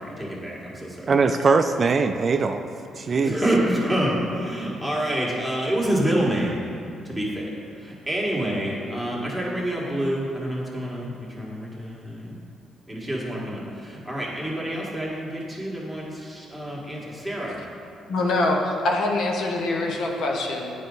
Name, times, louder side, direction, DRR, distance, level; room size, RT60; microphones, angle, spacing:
voice 1, 0.0-1.1 3.2-6.6 7.0-7.5 7.8-12.4 12.9-17.5, right 1 dB, ahead, -4 dB, 1.8 m, -27 dB
voice 2, 1.1-2.7 2.9-3.4, right 4 dB, 40° right, 7 dB, 0.3 m, -21 dB
voice 3, 18.1-20.7, left 2 dB, 70° left, 0 dB, 1.0 m, -24 dB
9.2 x 5.0 x 4.0 m, 2.4 s
cardioid pair, 90°, 0 cm